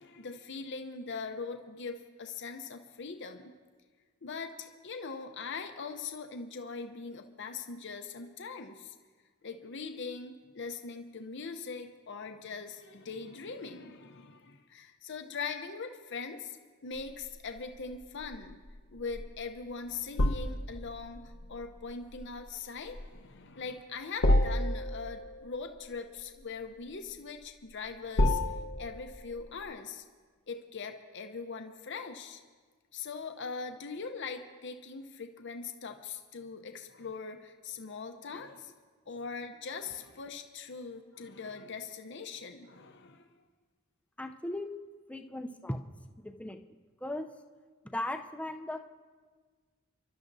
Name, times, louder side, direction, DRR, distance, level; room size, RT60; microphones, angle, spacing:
voice 1, 0.0-3.5 4.2-9.0 9.4-16.6 16.8-18.6 18.9-28.4 28.8-30.0 30.5-32.4 32.9-38.7 39.1-43.3, left 5 dB, 60° left, 6 dB, 0.8 m, -41 dB
sound 1, 16.9-29.6, left 1 dB, 80° left, 1.0 m, -32 dB
voice 2, 44.2-44.7 45.1-45.8 46.2-46.6 47.0-47.3 47.8-48.8, left 1 dB, 5° left, 5 dB, 0.6 m, -37 dB
29.5 x 12.0 x 2.7 m, 1.5 s
head